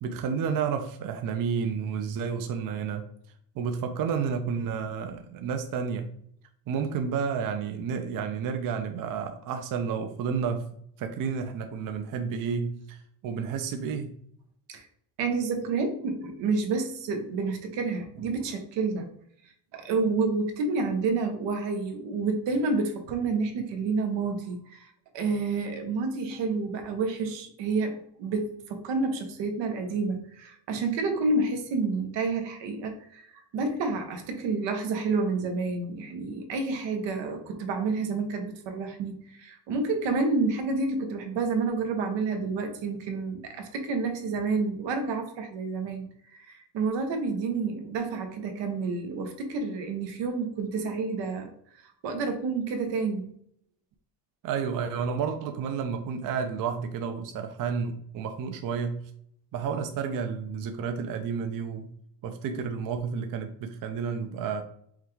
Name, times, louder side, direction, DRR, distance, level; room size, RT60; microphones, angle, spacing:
voice 1, 0.0-3.1 3.6-6.1 6.7-10.6 11.0-14.2 54.4-59.0 59.5-61.9 62.2-64.6, right 6 dB, 50° right, 0.5 m, -31 dB
voice 2, 15.2-19.1 19.7-46.1 46.3-51.5 51.8-53.2, right 4 dB, 90° right, 1.0 m, -29 dB
5.6 x 2.3 x 3.1 m
cardioid pair, 140°, 42 cm